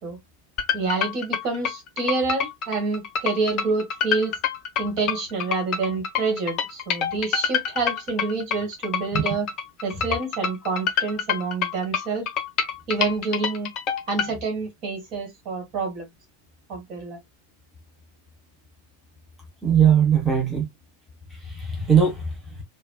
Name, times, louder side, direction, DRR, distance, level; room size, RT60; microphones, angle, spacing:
sound 1, 0.6-14.3, left 8 dB, 35° left, 0.8 m, -27 dB
voice 1, 0.7-4.3 4.8-9.5 9.8-12.3 12.9-13.7 14.1-16.0 16.7-17.2, right 4 dB, 40° right, 2.0 m, -27 dB
voice 2, 19.6-20.7 21.3-22.6, right 7 dB, 5° right, 1.4 m, -20 dB
5.0 x 2.6 x 2.4 m
figure-of-eight pair, 90°, 0 cm